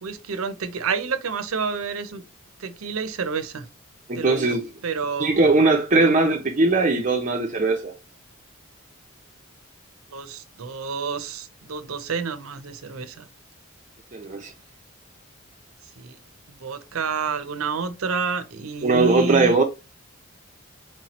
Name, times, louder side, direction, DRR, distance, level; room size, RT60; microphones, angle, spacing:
voice 1, 0.0-2.2 2.6-3.7 4.1-4.6 4.8-5.5 6.0-6.2 10.1-13.3 16.0-16.2 16.6-19.5, right 5 dB, 80° right, 0.6 m, -29 dB
voice 2, 4.1-4.7 5.2-7.9 14.1-14.5 18.8-19.6, right 3 dB, 35° right, 0.5 m, -20 dB
4.5 x 2.9 x 2.9 m
head